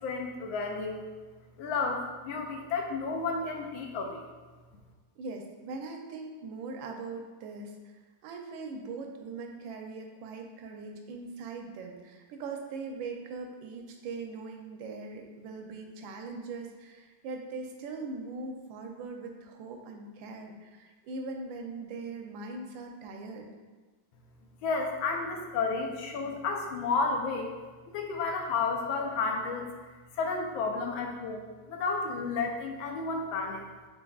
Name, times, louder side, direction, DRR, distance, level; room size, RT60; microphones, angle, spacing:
voice 1, 0.0-1.0 1.6-4.3 24.6-27.5 27.9-29.7 30.1-33.6, left 4 dB, 90° left, 2 dB, 1.4 m, -32 dB
voice 2, 5.2-7.9 8.2-23.5, right 3 dB, 80° right, 3 dB, 1.3 m, -41 dB
4.6 x 3.8 x 2.3 m, 1.4 s
omnidirectional pair, 2.1 m